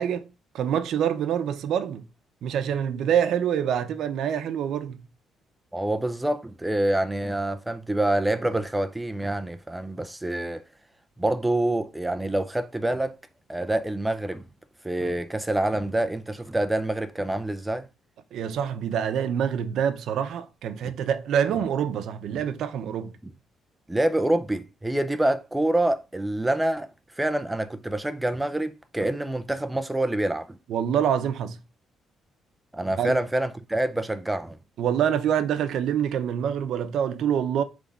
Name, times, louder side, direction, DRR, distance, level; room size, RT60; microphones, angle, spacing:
voice 1, 0.0-2.0 2.4-5.0 18.3-23.1 30.7-31.6 33.0-33.2 34.8-37.6, right 9 dB, 65° right, 0.8 m, -26 dB
voice 2, 5.7-10.6 11.2-13.2 13.5-14.5 14.8-17.9 20.8-20.9 21.5-21.6 22.3-22.4 23.2-23.3 23.9-26.9 27.2-30.6 32.7-34.6, right 1 dB, 5° right, 0.5 m, -26 dB
8.1 x 3.5 x 5.1 m
cardioid pair, 175°, 0 cm